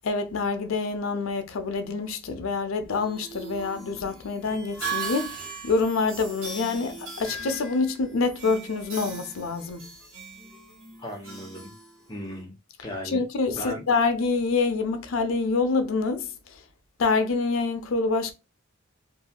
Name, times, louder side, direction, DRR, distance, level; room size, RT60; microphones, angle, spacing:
voice 1, 0.0-9.9 13.0-16.3 17.0-18.3, left 4 dB, 80° left, 0.5 m, -26 dB
sound 1, 2.9-12.4, right 4 dB, 85° right, 1.3 m, -39 dB
voice 2, 11.0-11.7 12.1-12.5 12.8-13.2 13.5-13.8, equal, 20° left, 0.8 m, -36 dB
2.7 x 2.3 x 2.8 m
head